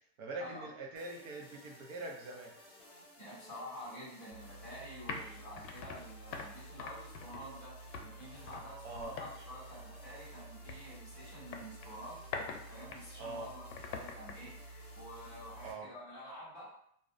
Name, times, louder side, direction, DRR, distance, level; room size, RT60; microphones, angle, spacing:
voice 1, 0.2-2.5 8.8-9.2 13.2-13.5 15.6-15.9, right 2 dB, 55° right, 0 dB, 0.7 m, -43 dB
sound 1, 1.0-15.7, left 2 dB, 40° left, 0.6 m, -58 dB
voice 2, 3.2-12.2 12.7-16.7, equal, 15° right, -13 dB, 0.3 m, -49 dB
sound 2, 4.3-15.7, left 3 dB, 90° left, 0.6 m, -46 dB
2.4 x 2.1 x 2.5 m, 0.70 s
supercardioid pair, 170°, 49 cm